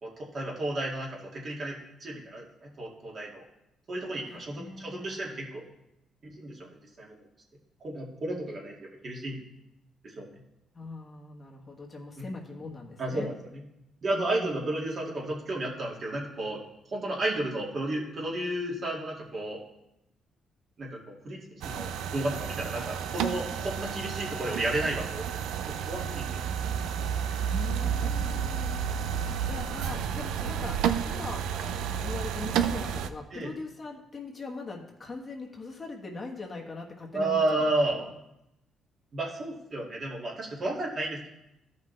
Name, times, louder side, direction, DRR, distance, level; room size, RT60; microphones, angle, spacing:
voice 1, 0.0-3.4 3.9-5.6 6.4-7.2 7.8-9.4 10.0-10.3 12.2-12.3 13.0-13.3 14.0-16.6 16.9-19.6 20.8-25.4 25.7-26.4 27.0-27.1 29.9-30.0 33.3-33.5 37.1-38.0 39.1-41.3, right 2 dB, 45° right, -3 dB, 2.2 m, -32 dB
voice 2, 4.2-5.2 10.7-13.3 14.1-14.8 27.4-31.5 32.0-37.6 37.9-38.1, left 3 dB, 35° left, 0 dB, 1.3 m, -41 dB
sound 1, 21.6-33.1, right 8 dB, 85° right, 0.4 m, -31 dB
13.0 x 5.5 x 3.3 m, 0.86 s
cardioid pair, 90°, 0 cm